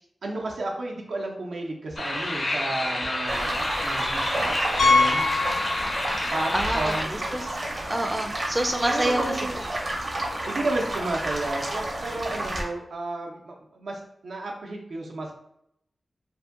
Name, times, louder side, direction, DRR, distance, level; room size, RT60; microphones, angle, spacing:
voice 1, 0.2-5.3 6.3-7.1 8.8-9.7 10.5-15.3, right 2 dB, 90° right, 0 dB, 0.5 m, -32 dB
sound 1, 2.0-7.0, left 1 dB, 50° left, 0.4 m, -29 dB
sound 2, 3.3-12.6, right 1 dB, 50° right, 0.6 m, -31 dB
Piano, 4.8-6.4 6.7-6.8 7.4-7.5 7.7-7.8 9.9-10.0, left 3 dB, 90° left, 0.8 m, -23 dB
voice 2, 6.5-7.5 7.9-9.4, right 1 dB, 15° right, 4 dB, 0.3 m, -27 dB
2.6 x 2.6 x 2.4 m, 0.76 s
wide cardioid pair, 90°, 0 cm